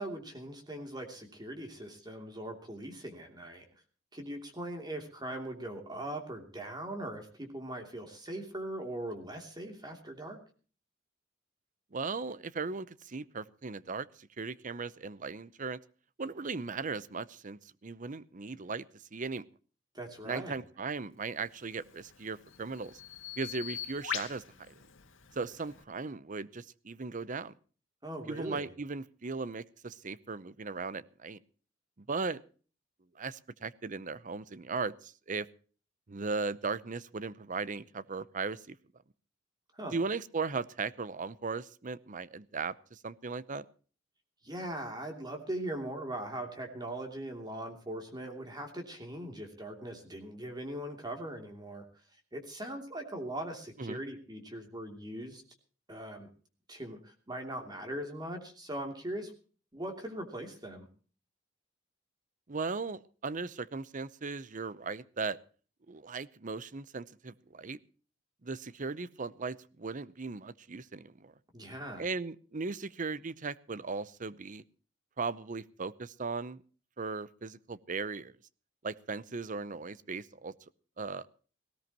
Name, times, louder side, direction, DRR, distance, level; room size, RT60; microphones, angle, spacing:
voice 1, 0.0-3.7 4.1-10.4 19.9-20.6 28.0-28.6 39.7-39.9 44.4-51.8 52.3-55.4 55.9-56.3 56.7-59.3 59.7-60.9 71.5-72.0, right 1 dB, 20° right, 4 dB, 2.9 m, -40 dB
voice 2, 11.9-15.8 16.2-18.8 19.1-19.4 20.2-23.0 23.4-24.7 25.3-27.5 28.3-31.4 32.0-32.4 33.2-35.5 36.1-38.8 39.9-43.7 53.8-54.0 62.5-65.4 65.9-67.8 68.4-71.3 72.0-74.6 75.2-76.6 77.0-78.4 78.8-80.5 81.0-81.3, right 4 dB, 40° right, 18 dB, 0.7 m, -37 dB
Bird vocalization bird call bird song, 21.6-25.8, left 8 dB, 80° left, 1.8 m, -43 dB
19.0 x 17.5 x 3.0 m, 0.40 s
head